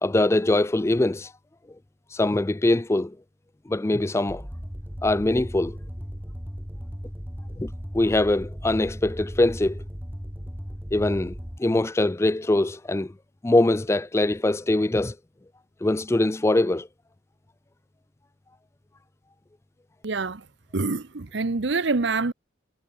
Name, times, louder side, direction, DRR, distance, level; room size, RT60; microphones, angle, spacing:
voice 1, 0.0-1.3 2.1-3.2 3.7-4.4 5.0-5.8 7.6-9.8 10.9-13.1 13.4-15.2 15.8-16.9, left 2 dB, 15° left, 0.3 m, -23 dB
sound 1, 4.3-11.6, equal, 10° right, 6.3 m, -36 dB
voice 2, 20.0-20.4 20.7-22.3, right 3 dB, 60° right, 0.8 m, -26 dB
head